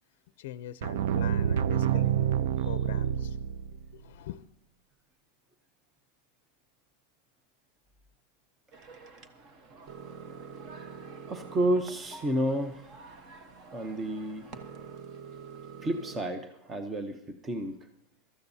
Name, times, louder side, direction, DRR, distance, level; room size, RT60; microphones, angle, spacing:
voice 1, 0.4-2.2 2.6-3.4 4.0-4.4, left 12 dB, 65° left, 13 dB, 0.5 m, -42 dB
sound 1, 0.8-3.9, right 9 dB, 65° right, 0.4 m, -27 dB
sound 2, 8.7-16.2, right 6 dB, 35° right, 1.1 m, -47 dB
voice 2, 11.3-12.9 13.7-14.4 15.8-17.8, right 1 dB, 15° right, 8 dB, 0.7 m, -31 dB
22.0 x 13.5 x 2.7 m, 0.79 s
supercardioid pair, 155°, 0 cm